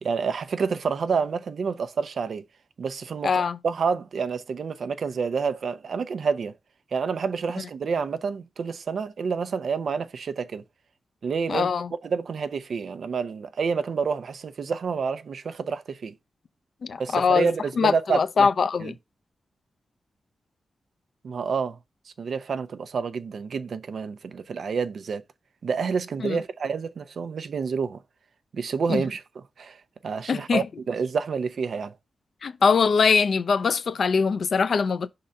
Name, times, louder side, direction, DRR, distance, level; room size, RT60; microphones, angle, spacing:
voice 1, 0.0-2.4 2.8-6.5 6.9-10.6 11.2-11.7 12.0-16.1 17.0-18.5 18.8-18.9 21.2-21.8 22.1-25.2 25.6-28.0 28.5-29.2 29.6-31.9, right 5 dB, 65° right, 0.6 m, -28 dB
voice 2, 3.2-3.6 11.5-11.9 16.8-17.5 17.8-18.9 26.2-26.4 28.9-29.0 30.3-30.7 32.4-35.1, left 5 dB, 60° left, 0.5 m, -22 dB
5.6 x 3.8 x 5.2 m
wide cardioid pair, 120°, 0 cm